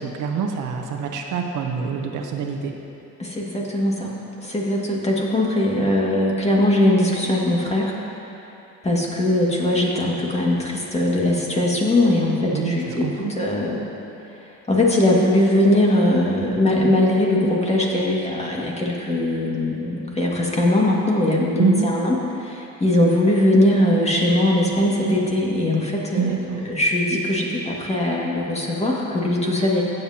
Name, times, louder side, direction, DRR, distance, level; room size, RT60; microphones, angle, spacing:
voice 1, 0.0-2.7 12.5-13.3 21.6-21.9 26.2-26.6, right 5 dB, 85° right, 3 dB, 0.9 m, -25 dB
voice 2, 3.2-4.1 4.4-7.9 8.8-13.1 13.4-13.8 14.7-29.8, left 1 dB, 20° left, -3 dB, 1.9 m, -20 dB
15.5 x 7.9 x 2.9 m, 2.9 s
cardioid pair, 90°, 30 cm